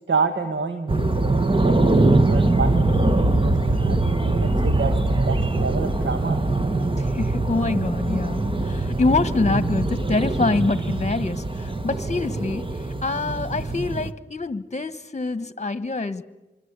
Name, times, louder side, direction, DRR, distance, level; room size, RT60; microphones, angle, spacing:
voice 1, 0.1-1.2 1.6-2.9 3.3-6.4, right 4 dB, 85° right, 7 dB, 1.5 m, -28 dB
sound 1, 0.9-14.1, right 2 dB, 25° right, 1.4 m, -22 dB
voice 2, 7.0-12.7 13.0-16.2, left 3 dB, 35° left, 13 dB, 1.4 m, -25 dB
26.0 x 24.5 x 8.3 m, 1.1 s
wide cardioid pair, 55°, 19 cm